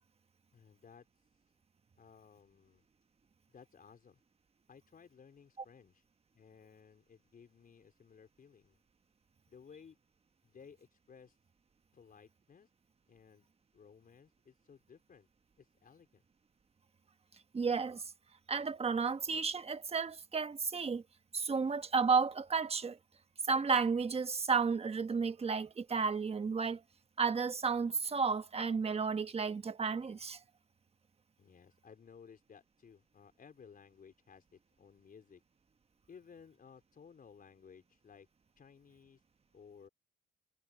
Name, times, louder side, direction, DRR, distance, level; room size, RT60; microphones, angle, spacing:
voice 1, 0.5-1.1 2.0-2.8 3.5-4.2 4.7-6.0 6.3-8.8 9.5-10.0 10.4-11.4 11.9-12.7 13.1-13.5 13.7-15.3 15.6-16.2 31.4-35.4 36.1-38.3 38.6-39.2 39.5-39.9, left 6 dB, 45° left, 4.6 m, -58 dB
voice 2, 17.5-18.0 18.5-21.0 21.3-23.0 23.5-26.8 27.2-30.4, right 5 dB, 30° right, 1.3 m, -32 dB
cardioid pair, 90°, 20 cm